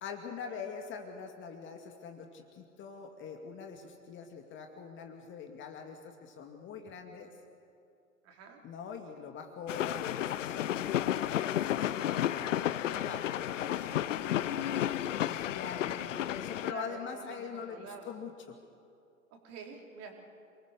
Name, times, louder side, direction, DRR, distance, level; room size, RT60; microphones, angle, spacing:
voice 1, 0.0-7.3 8.6-14.7 15.2-18.6, left 6 dB, 30° left, 4 dB, 2.2 m, -44 dB
voice 2, 8.2-8.6 16.7-18.1 19.3-20.2, right 5 dB, 35° right, 1 dB, 4.2 m, -47 dB
sound 1, 9.7-16.7, left 12 dB, 60° left, 0.8 m, -32 dB
27.5 x 21.0 x 6.8 m, 2.4 s
figure-of-eight pair, 100°, 42 cm